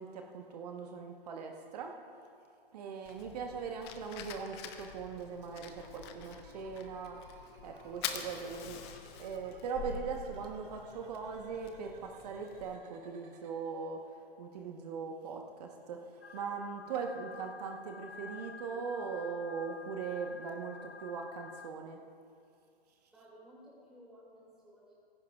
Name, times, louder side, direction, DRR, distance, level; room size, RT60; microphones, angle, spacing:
voice 1, 0.0-1.9 2.7-7.2 7.6-8.8 9.2-14.0 14.4-16.1 16.3-22.0, right 5 dB, 40° right, 3 dB, 1.1 m, -40 dB
Fire, 3.0-12.7, left 7 dB, 25° left, 0.8 m, -46 dB
sound 1, 5.5-13.5, right 3 dB, 55° right, 2.5 m, -59 dB
sound 2, 16.2-21.7, left 6 dB, 80° left, 0.7 m, -49 dB
voice 2, 23.1-24.9, equal, ahead, -7 dB, 2.3 m, -56 dB
18.5 x 15.5 x 2.4 m, 2.4 s
figure-of-eight pair, 130°, 31 cm